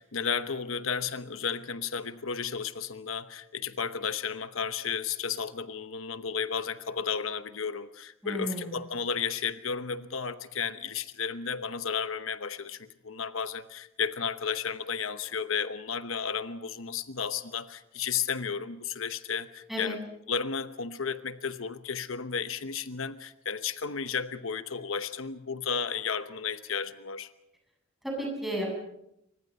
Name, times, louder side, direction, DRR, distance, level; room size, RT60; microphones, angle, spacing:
voice 1, 0.0-20.0 20.3-27.3, left 6 dB, 75° left, 11 dB, 1.0 m, -33 dB
voice 2, 8.2-8.8 19.7-19.9 28.0-28.7, right 1 dB, ahead, 0 dB, 8.0 m, -33 dB
27.5 x 24.5 x 5.5 m, 0.82 s
head